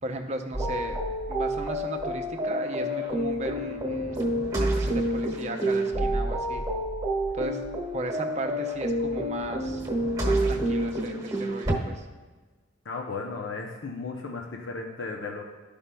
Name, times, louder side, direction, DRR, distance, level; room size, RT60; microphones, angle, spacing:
voice 1, 0.0-1.0 1.3-6.6 7.3-7.6 7.9-9.9 10.3-12.0, right 2 dB, 35° right, 4 dB, 0.6 m, -36 dB
sound 1, 0.5-11.8, right 1 dB, 20° right, 1.4 m, -28 dB
voice 2, 12.8-15.4, left 4 dB, 70° left, 1 dB, 0.7 m, -35 dB
12.5 x 5.1 x 2.2 m, 1.3 s
head